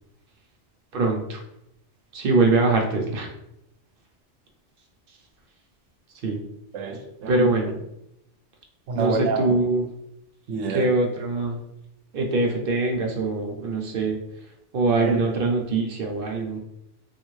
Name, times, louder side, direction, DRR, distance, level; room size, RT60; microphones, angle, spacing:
voice 1, 0.9-1.4 2.1-3.3 6.2-6.4 7.3-7.7 8.9-9.8 10.7-11.6 12.1-14.2 14.7-16.6, right 3 dB, 60° right, 2 dB, 0.7 m, -23 dB
voice 2, 6.7-7.5 8.9-9.6 10.5-10.9 15.0-15.2, right 4 dB, 85° right, 5 dB, 0.9 m, -28 dB
3.5 x 2.3 x 3.0 m, 0.82 s
omnidirectional pair, 1.2 m